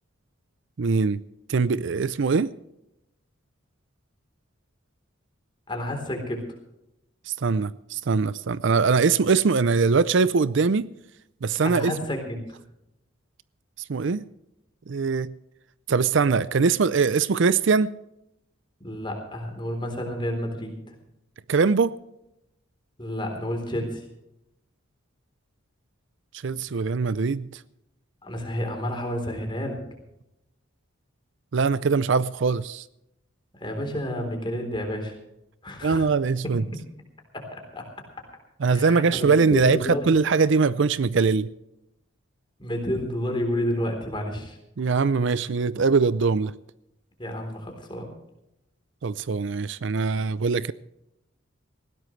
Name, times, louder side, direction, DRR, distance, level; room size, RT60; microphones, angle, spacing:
voice 1, 0.8-1.2 1.5-2.5 7.3-10.9 11.4-11.9 13.9-14.2 14.9-15.3 15.9-17.9 21.5-21.9 26.4-27.6 31.5-32.8 35.8-36.6 38.6-41.5 44.8-46.5 49.0-50.7, right 4 dB, 60° right, 0.5 m, -22 dB
voice 2, 5.7-6.4 11.6-12.4 18.8-20.9 23.0-24.0 28.2-29.8 33.5-35.1 35.6-36.1 36.4-36.5 37.5-37.9 38.7-40.1 42.6-44.6 47.2-48.1, equal, 25° left, 3.8 m, -30 dB
19.5 x 16.0 x 3.2 m
head